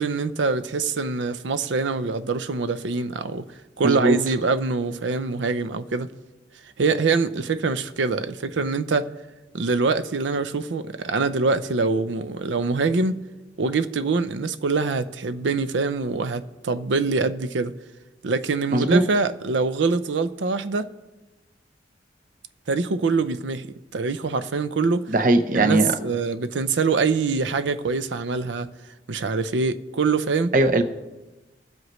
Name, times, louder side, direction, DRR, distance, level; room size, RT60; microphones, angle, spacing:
voice 1, 0.0-3.4 3.8-6.1 6.8-9.1 9.5-13.2 13.6-17.7 18.2-20.9 22.7-23.7 23.9-25.1 25.5-28.7 29.1-30.5, right 4 dB, 90° right, 0.6 m, -24 dB
voice 2, 3.8-4.2 18.7-19.0 25.1-25.9 30.5-30.8, right 2 dB, 45° right, 0.7 m, -19 dB
21.0 x 7.9 x 3.1 m
head